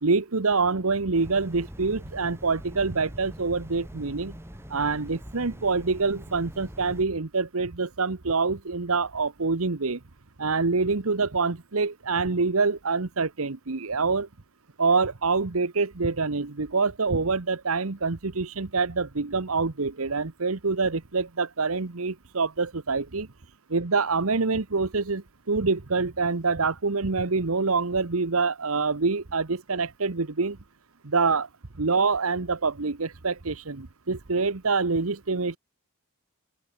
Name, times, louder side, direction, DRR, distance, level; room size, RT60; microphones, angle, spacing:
voice 1, 0.0-4.4 4.7-10.0 10.4-14.3 14.8-23.3 23.7-30.6 31.0-31.5 31.8-35.6, right 4 dB, 75° right, 1.2 m, -26 dB
sound 1, 1.1-7.0, equal, 10° right, 4.8 m, -43 dB
open air
head